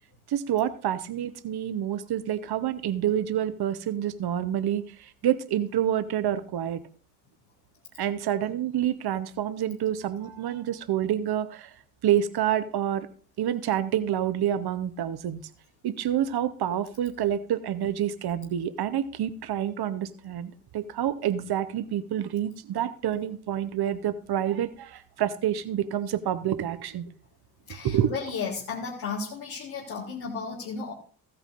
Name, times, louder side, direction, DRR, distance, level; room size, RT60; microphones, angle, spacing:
voice 1, 0.3-6.8 8.0-11.7 12.0-13.1 13.4-15.4 15.8-27.1 27.8-28.1, right 10 dB, 50° right, 13 dB, 1.0 m, -28 dB
voice 2, 27.7-30.9, left 5 dB, 80° left, -4 dB, 1.8 m, -34 dB
15.0 x 9.0 x 2.6 m, 0.42 s
hypercardioid pair, 45°, 49 cm